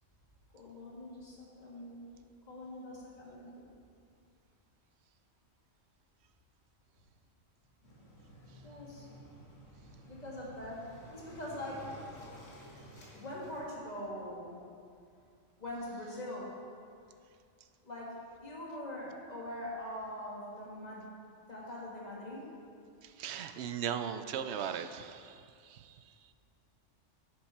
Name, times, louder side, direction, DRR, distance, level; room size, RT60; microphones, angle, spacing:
voice 1, 0.5-2.0 2.5-3.7 8.6-9.1 10.1-11.9 13.1-14.6 15.6-16.5 17.8-21.1 21.5-22.5, left 1 dB, 35° left, -5 dB, 2.1 m, -43 dB
Waves surf, 7.8-13.6, equal, 80° left, 2.1 m, -52 dB
voice 2, 23.0-26.0, right 8 dB, 65° right, 10 dB, 0.8 m, -38 dB
10.5 x 7.7 x 4.2 m, 2.4 s
omnidirectional pair, 1.3 m